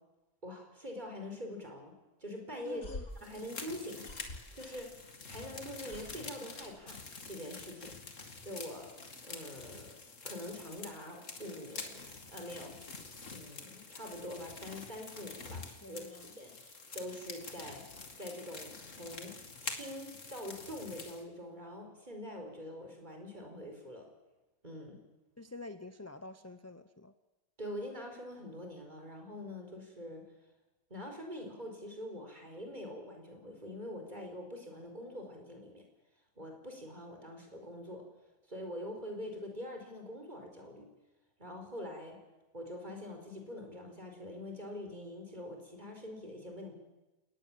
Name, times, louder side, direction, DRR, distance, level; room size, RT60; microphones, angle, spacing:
voice 1, 0.4-3.0 3.2-4.0 4.5-4.9 5.3-7.0 7.3-8.0 8.4-8.9 9.2-10.0 10.2-12.8 13.3-17.8 18.2-24.1 24.6-25.0 27.6-30.2 30.9-35.8 36.3-38.0 38.5-40.9 41.4-42.2 42.5-46.8, left 1 dB, 30° right, 3 dB, 5.0 m, -44 dB
sound 1, 2.6-5.2 5.5-7.4, left 2 dB, 80° left, 3.7 m, -48 dB
voice 2, 2.7-3.0 15.7-16.3 25.4-27.1, left 2 dB, 15° left, 10 dB, 0.7 m, -48 dB
sound 2, 3.2-21.2, left 3 dB, 65° left, 2.6 m, -47 dB
30.0 x 19.0 x 7.5 m, 1.1 s
omnidirectional pair, 1.4 m